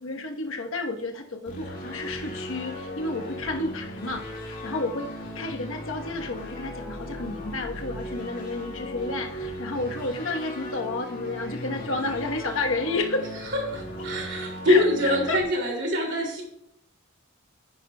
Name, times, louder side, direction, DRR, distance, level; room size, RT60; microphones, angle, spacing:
voice 1, 0.0-5.1 5.3-13.3 14.7-15.4, left 2 dB, 70° left, 3 dB, 1.1 m, -31 dB
sound 1, 1.5-15.4, left 1 dB, 45° left, 2.0 m, -37 dB
voice 2, 13.5-16.4, left 1 dB, 60° right, 1 dB, 2.7 m, -24 dB
9.8 x 9.6 x 2.3 m, 0.77 s
head